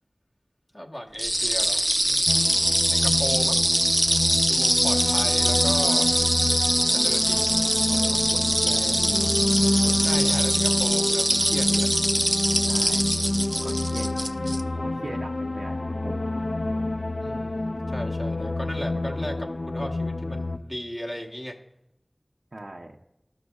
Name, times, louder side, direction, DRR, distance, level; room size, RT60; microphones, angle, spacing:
voice 1, 0.7-3.6 4.5-6.1 6.9-7.4 8.7-9.0 10.0-11.9 17.2-21.6, equal, 40° left, 0 dB, 1.1 m, -36 dB
sound 1, 1.2-14.6, right 1 dB, 15° right, 0.5 m, -23 dB
sound 2, 2.3-20.6, left 2 dB, 80° left, 0.3 m, -28 dB
voice 2, 7.8-9.2 9.8-10.4 12.6-14.2 14.7-16.3 22.5-22.9, right 1 dB, 80° right, -1 dB, 0.6 m, -40 dB
13.0 x 6.4 x 2.3 m, 0.85 s
wide cardioid pair, 40°, 0 cm